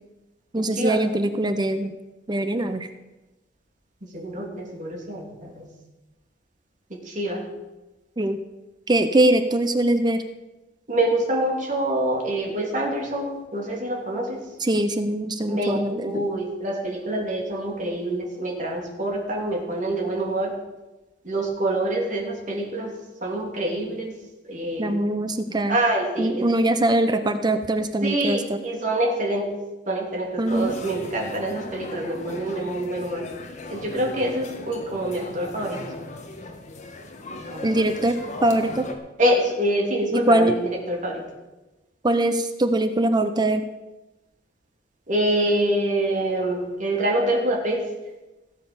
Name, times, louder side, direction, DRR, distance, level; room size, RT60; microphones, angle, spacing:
voice 1, 0.5-1.9 2.3-2.9 8.2-8.4 8.9-10.2 14.6-16.2 24.8-25.8 26.2-28.6 30.4-30.7 37.6-38.1 38.4-38.8 40.1-40.5 42.0-43.6, right 1 dB, 25° right, 9 dB, 0.7 m, -22 dB
voice 2, 4.0-5.6 7.0-7.4 10.9-14.5 15.5-20.5 21.2-22.9 23.2-24.1 24.4-25.0 25.7-26.5 28.0-29.5 29.9-33.2 33.7-35.8 37.5-37.6 39.2-41.2 45.1-47.9, right 1 dB, 45° right, -1 dB, 3.2 m, -26 dB
sound 1, 30.5-38.9, left 2 dB, 40° left, 1.6 m, -37 dB
17.0 x 7.6 x 6.9 m, 1.1 s
head